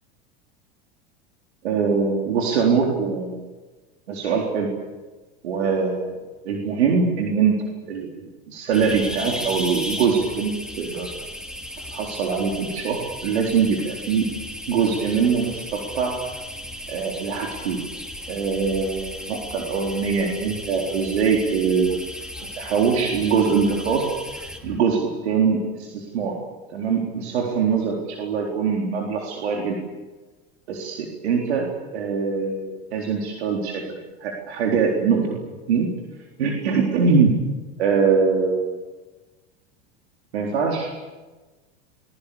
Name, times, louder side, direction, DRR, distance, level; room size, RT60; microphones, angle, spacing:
voice 1, 1.6-3.5 4.1-4.7 5.4-6.2 6.4-7.6 7.9-10.5 10.8-11.1 11.9-14.3 14.7-16.2 16.9-17.8 18.3-22.0 22.5-24.0 24.3-26.4 26.7-29.8 30.7-31.7 31.9-35.4 35.7-35.9 36.4-37.3 37.8-38.7 40.3-40.9, right 5 dB, 85° right, 0 dB, 4.1 m, -23 dB
sound 1, 8.7-24.8, left 1 dB, ahead, 2.6 m, -35 dB
29.5 x 22.0 x 7.0 m, 1.2 s
supercardioid pair, 110°, 32 cm